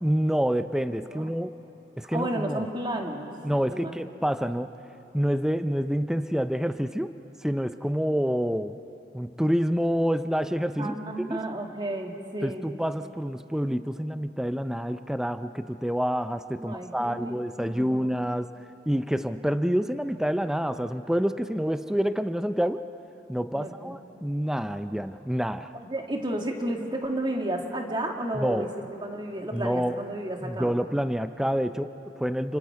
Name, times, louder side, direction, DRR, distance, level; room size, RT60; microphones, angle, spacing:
voice 1, 0.0-1.5 2.0-2.7 3.4-4.7 5.1-7.1 7.4-8.8 9.1-11.4 12.4-18.5 18.9-22.9 23.3-25.7 28.4-28.7 29.5-30.0 30.4-32.6, equal, 5° right, 10 dB, 0.4 m, -27 dB
voice 2, 2.1-3.3 3.7-3.9 10.8-12.6 16.6-18.2 23.5-23.9 25.7-28.7 29.0-30.7, right 1 dB, 25° right, 2 dB, 1.9 m, -32 dB
29.5 x 24.5 x 4.8 m, 2.9 s
head